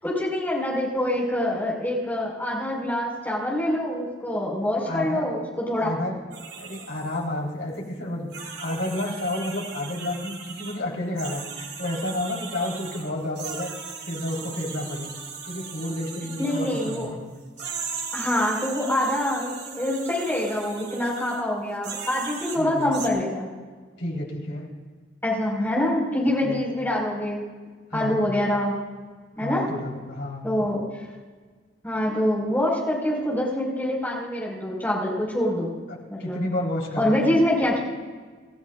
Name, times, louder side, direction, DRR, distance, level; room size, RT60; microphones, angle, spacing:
voice 1, 0.0-5.9 16.4-17.1 18.1-23.5 25.2-27.4 27.9-28.7 29.3-29.7 30.4-30.8 31.8-35.7 36.1-36.4 37.0-37.8, left 1 dB, 10° left, -4 dB, 5.0 m, -25 dB
voice 2, 4.9-5.2 5.8-6.2 6.6-13.7 14.0-15.1 15.4-17.2 22.6-22.9 24.0-24.7 26.4-26.6 27.9-28.3 29.4-30.4 35.9-37.4, left 1 dB, 70° left, -3 dB, 4.1 m, -31 dB
sound 1, 6.3-7.2 7.7-7.8 8.3-10.8 11.2-17.1 17.6-21.4 21.8-23.1, right 6 dB, 60° right, 2.1 m, -38 dB
28.0 x 14.0 x 2.5 m, 1.5 s
head